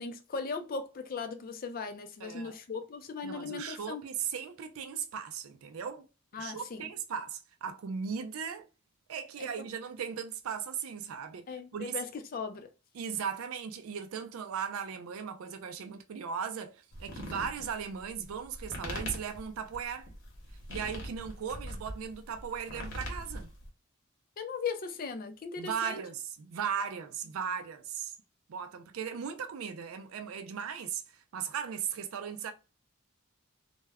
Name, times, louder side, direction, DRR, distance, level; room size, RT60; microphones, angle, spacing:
voice 1, 0.0-4.0 6.3-6.9 9.4-9.5 11.5-12.7 24.4-26.0, left 5 dB, 45° left, 0.4 m, -38 dB
voice 2, 2.2-2.6 3.2-6.1 6.4-8.7 9.1-12.0 12.9-20.1 20.7-23.5 25.6-28.1 28.5-32.5, right 7 dB, 90° right, 0.4 m, -37 dB
sound 1, 16.9-23.7, equal, 60° left, 0.9 m, -42 dB
2.2 x 2.1 x 3.4 m
head